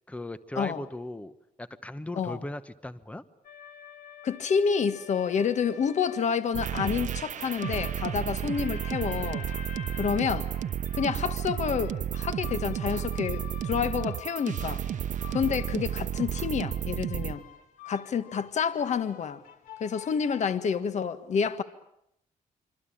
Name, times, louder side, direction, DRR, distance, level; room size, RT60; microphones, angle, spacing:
voice 1, 0.1-3.2 10.1-10.2, left 1 dB, 10° left, 1.1 m, -38 dB
sound 1, 3.4-6.3 7.3-20.5, left 10 dB, 85° left, 2.7 m, -47 dB
voice 2, 4.2-9.5 10.0-10.5 11.0-14.8 15.3-17.4 17.9-19.4 19.8-21.6, left 6 dB, 55° left, 1.7 m, -28 dB
sound 2, 6.5-17.3, right 10 dB, 60° right, 1.1 m, -32 dB
25.5 x 25.5 x 8.9 m
cardioid pair, 110°, 14 cm